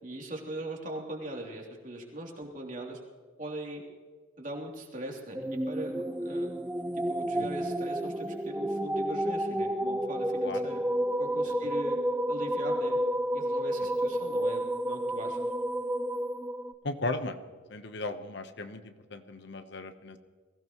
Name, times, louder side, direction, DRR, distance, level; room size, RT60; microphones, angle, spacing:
voice 1, 0.0-3.0 3.4-3.8 4.4-6.5 7.1-10.8 11.2-12.0 12.3-13.0 13.3-15.4, right 1 dB, 40° right, -1 dB, 3.1 m, -40 dB
sound 1, 5.3-16.7, right 1 dB, 10° right, 0.4 m, -30 dB
voice 2, 16.8-17.4 17.7-20.2, left 2 dB, 60° left, 8 dB, 1.0 m, -36 dB
22.0 x 16.0 x 3.1 m, 1.5 s
head